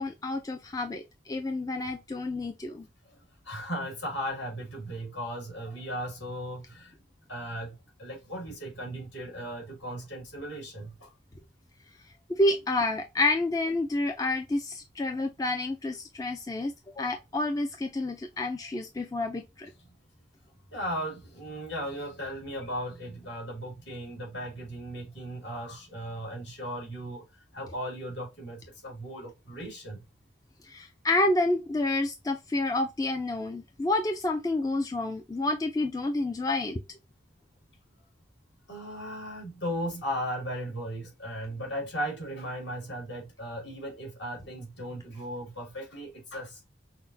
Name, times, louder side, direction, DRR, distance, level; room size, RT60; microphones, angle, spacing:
voice 1, 0.0-2.9 12.3-19.7 30.6-36.8, left 2 dB, 20° left, 0.4 m, -29 dB
voice 2, 3.4-6.9 7.3-11.1 20.7-30.0 38.7-46.7, equal, 65° left, 2.4 m, -37 dB
5.8 x 2.1 x 2.6 m
head